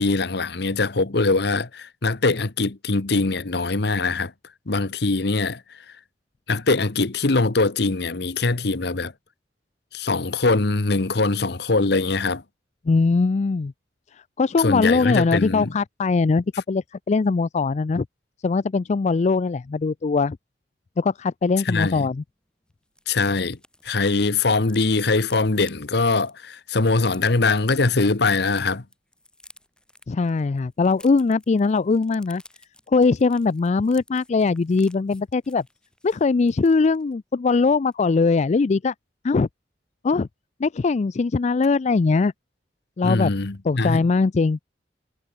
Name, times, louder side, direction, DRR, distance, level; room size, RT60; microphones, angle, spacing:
voice 1, 0.0-4.3 4.7-5.6 6.5-9.1 9.9-12.4 14.6-15.7 21.6-22.1 23.1-23.6 23.8-28.8 43.0-44.0, left 3 dB, 65° left, 1.2 m, -22 dB
voice 2, 12.9-13.7 14.4-18.1 18.4-20.4 21.0-22.2 30.1-32.4 32.9-35.6 36.0-38.9 39.2-39.5 40.0-40.3 40.6-42.3 43.0-43.3 43.6-44.6, left 4 dB, 40° left, 0.4 m, -21 dB
sound 1, 21.9-22.0 22.3-22.4 22.6-28.6 28.9-37.1 37.5-37.7 37.9-38.2, left 1 dB, 5° left, 7.0 m, -53 dB
head